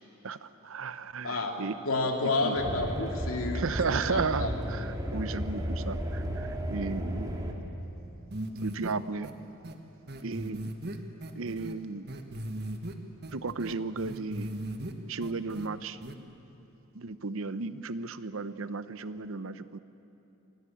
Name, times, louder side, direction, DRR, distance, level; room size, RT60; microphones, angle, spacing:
voice 1, 0.2-1.7 2.2-2.6 3.5-7.6 8.6-9.3 10.2-10.7 11.4-12.1 13.3-14.5 15.1-16.0 16.9-19.8, right 4 dB, 65° right, 14 dB, 0.8 m, -34 dB
voice 2, 1.2-1.6 1.8-4.6 10.2-10.3, left 2 dB, 70° left, 3 dB, 2.7 m, -30 dB
sound 1, 2.6-7.5, equal, 20° right, 2.3 m, -34 dB
sound 2, 8.3-8.9 9.2-9.3 9.6-9.7 10.1-11.7 12.1-12.9 13.2-14.9 15.2-15.7 16.0-16.1, right 1 dB, 50° right, 1.6 m, -37 dB
27.5 x 17.5 x 8.6 m, 3.0 s
head